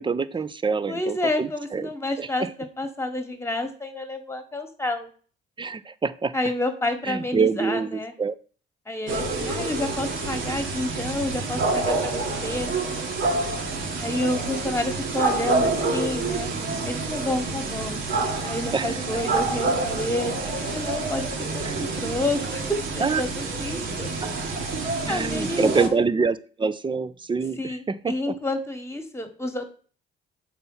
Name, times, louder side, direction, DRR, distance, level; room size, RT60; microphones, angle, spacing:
voice 1, 0.0-1.9 2.2-2.5 5.6-6.3 7.1-8.3 18.7-18.9 21.6-21.8 23.0-23.2 24.2-24.3 25.1-28.1, right 5 dB, 25° right, 14 dB, 0.5 m, -26 dB
voice 2, 0.9-5.1 6.3-8.1 8.8-12.7 14.0-16.5 16.8-18.0 18.4-20.4 20.7-24.1 24.8-26.0 27.6-29.6, left 1 dB, 15° left, 6 dB, 1.4 m, -29 dB
sound 1, 9.1-25.9, right 3 dB, 70° right, 1.6 m, -28 dB
5.7 x 4.5 x 5.5 m, 0.41 s
cardioid pair, 90°, 20 cm